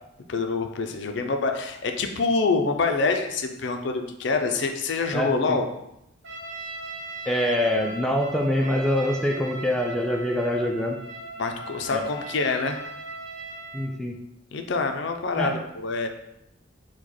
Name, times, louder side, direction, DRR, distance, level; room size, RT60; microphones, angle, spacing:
voice 1, 0.3-5.6 11.4-12.8 14.5-16.1, left 4 dB, 65° left, 5 dB, 0.5 m, -26 dB
voice 2, 5.1-5.6 7.3-11.0 11.9-12.0 13.7-14.2 15.4-15.6, left 1 dB, 5° left, 0 dB, 0.3 m, -25 dB
Trumpet, 6.2-13.9, right 2 dB, 70° right, 0.9 m, -38 dB
4.8 x 2.3 x 4.1 m, 0.84 s
head